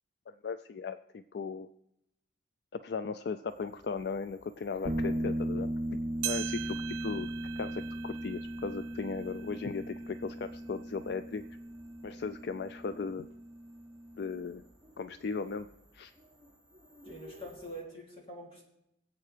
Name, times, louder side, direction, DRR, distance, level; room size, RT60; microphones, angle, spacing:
voice 1, 0.3-1.7 2.7-5.7 6.2-11.4 12.0-13.3 14.2-14.6 15.0-15.7 15.9-16.1, left 5 dB, 60° left, 11 dB, 0.3 m, -37 dB
sound 1, 3.5-17.8, left 1 dB, ahead, 5.3 m, -60 dB
sound 2, 4.8-14.3, right 1 dB, 45° right, 3.2 m, -37 dB
sound 3, 6.2-10.9 11.4-11.5 12.3-12.4 13.3-13.4, right 15 dB, 85° right, 0.7 m, -42 dB
voice 2, 17.0-18.6, right 1 dB, 30° left, -2 dB, 2.8 m, -45 dB
23.5 x 8.1 x 3.3 m, 0.84 s
head